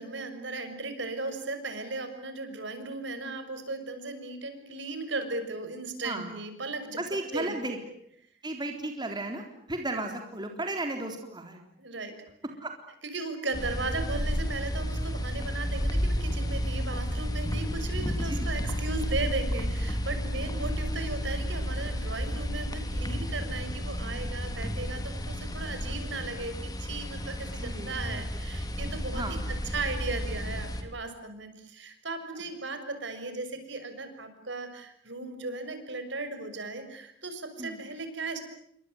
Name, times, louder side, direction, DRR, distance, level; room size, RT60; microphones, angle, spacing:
voice 1, 0.0-7.0 7.3-7.6 11.8-12.1 13.1-29.2 29.7-38.4, right 3 dB, 65° right, 8 dB, 6.6 m, -36 dB
voice 2, 6.0-6.4 7.0-7.8 8.4-9.4 9.7-11.6 12.6-12.7 18.2-18.5 27.5-27.9 29.1-29.4 37.6-37.8, right 2 dB, 25° right, 4 dB, 3.8 m, -34 dB
sound 1, 13.5-30.8, equal, 20° left, 3.6 m, -32 dB
29.5 x 25.5 x 7.9 m, 0.71 s
head